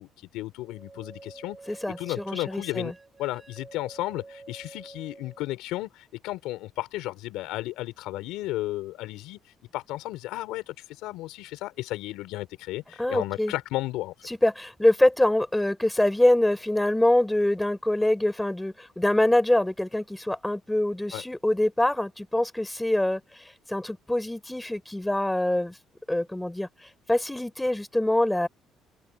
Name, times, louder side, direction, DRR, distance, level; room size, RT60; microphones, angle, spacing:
voice 1, 0.0-1.6 1.9-2.9 3.2-9.4 9.7-14.1 21.1-21.2, left 17 dB, 85° left, 4.5 m, -34 dB
sound 1, 0.6-5.5, right 3 dB, 20° right, 6.9 m, -48 dB
voice 2, 2.2-2.9 13.0-13.5 14.3-23.2 23.7-25.7 26.1-26.7 27.1-28.5, left 1 dB, 5° left, 4.6 m, -24 dB
cardioid pair, 90°, 0 cm